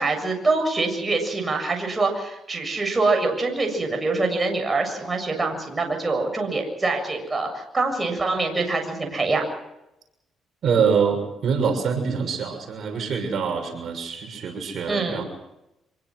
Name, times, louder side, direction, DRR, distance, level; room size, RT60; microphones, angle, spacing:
voice 1, 0.0-9.4 14.9-15.2, right 3 dB, 25° right, 3 dB, 7.4 m, -24 dB
voice 2, 10.6-15.2, right 6 dB, 60° right, 4 dB, 6.5 m, -24 dB
26.0 x 23.0 x 6.4 m, 0.88 s
cardioid pair, 90°, 0 cm